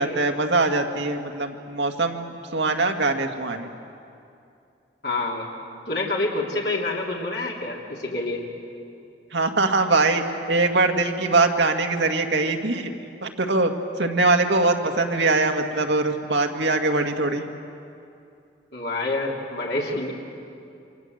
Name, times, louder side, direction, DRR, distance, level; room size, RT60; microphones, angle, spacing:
voice 1, 0.0-3.7 9.3-12.9 13.2-13.7 14.0-17.4, right 3 dB, 75° right, 4 dB, 2.0 m, -22 dB
voice 2, 5.0-5.5 5.9-8.4 18.7-20.1, left 2 dB, 65° left, -2 dB, 3.1 m, -27 dB
28.0 x 25.5 x 8.0 m, 2.6 s
head